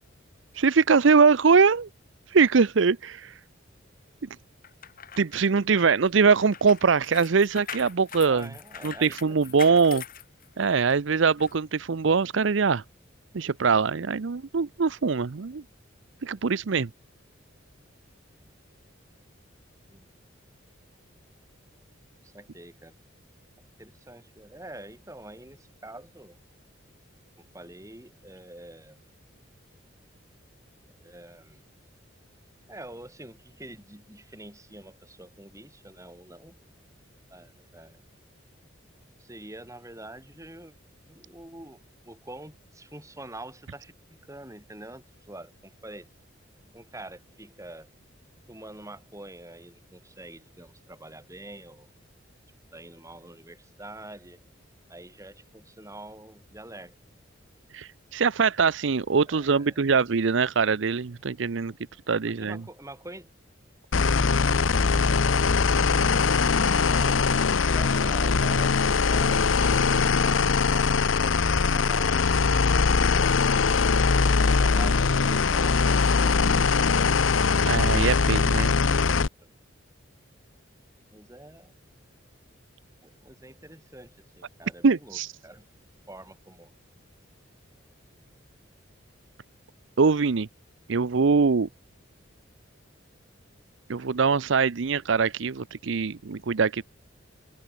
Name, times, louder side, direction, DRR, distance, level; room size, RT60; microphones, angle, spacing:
voice 1, 0.5-1.9 2.3-3.4 5.2-8.5 8.8-10.0 10.6-12.8 13.3-15.6 16.2-16.9 57.7-61.7 62.1-62.6 77.7-78.7 84.8-85.3 90.0-90.5 90.9-91.7 93.9-96.8, right 5 dB, 70° right, 0.6 m, -22 dB
sound 1, 4.6-10.9 11.4-11.5, left 9 dB, 45° left, 3.6 m, -43 dB
voice 2, 8.3-9.9 19.9-20.1 22.2-23.0 23.8-26.4 27.4-29.0 31.0-31.6 32.7-36.6 37.3-38.0 39.2-40.7 41.1-46.1 46.7-47.9 48.5-51.9 52.7-54.4 54.9-57.0 59.3-59.8 62.3-63.3 66.9-72.4 72.7-73.3 74.1-77.3 78.7-79.5 81.1-81.7 83.0-85.7 86.1-86.7, right 1 dB, 15° right, 6.9 m, -46 dB
sound 2, 63.9-79.3, left 5 dB, 75° left, 0.8 m, -22 dB
head